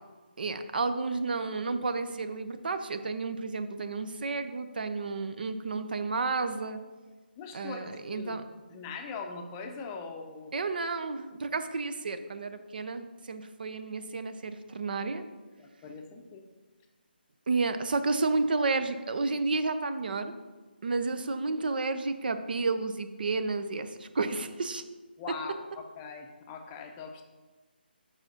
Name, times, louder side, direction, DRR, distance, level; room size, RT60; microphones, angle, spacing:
voice 1, 0.4-6.8 7.5-8.4 10.5-15.2 17.5-20.3 20.8-24.8, right 3 dB, 60° right, 9 dB, 0.6 m, -31 dB
voice 2, 7.4-8.4 8.7-10.5 15.6-16.4 25.2-27.2, left 5 dB, 20° left, 4 dB, 0.6 m, -41 dB
5.7 x 4.8 x 6.5 m, 1.3 s
figure-of-eight pair, 155°, 6 cm